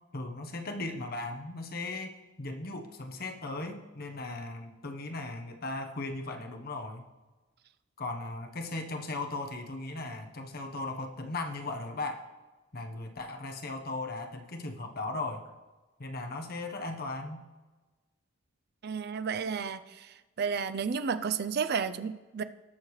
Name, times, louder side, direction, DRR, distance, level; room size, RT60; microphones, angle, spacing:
voice 1, 0.1-2.1 2.4-7.0 8.0-12.2 12.7-15.5 16.0-17.4, left 2 dB, 50° left, 4 dB, 1.0 m, -37 dB
voice 2, 18.8-22.4, right 6 dB, 50° right, 12 dB, 0.5 m, -32 dB
19.0 x 6.6 x 3.2 m, 1.2 s
head